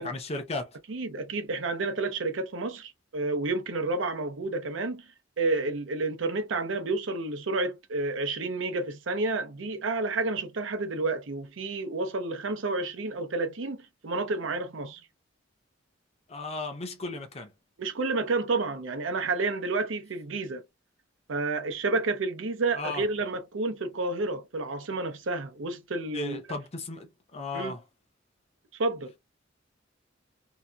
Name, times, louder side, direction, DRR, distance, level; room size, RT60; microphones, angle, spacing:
voice 1, 0.0-0.8 16.3-17.5 22.7-23.0 26.1-27.8, left 2 dB, 35° left, 0.7 m, -35 dB
voice 2, 0.9-5.1 5.4-15.0 17.8-20.6 21.3-26.4 27.5-27.7 28.8-29.1, right 3 dB, 85° right, 0.6 m, -30 dB
2.7 x 2.3 x 2.2 m
head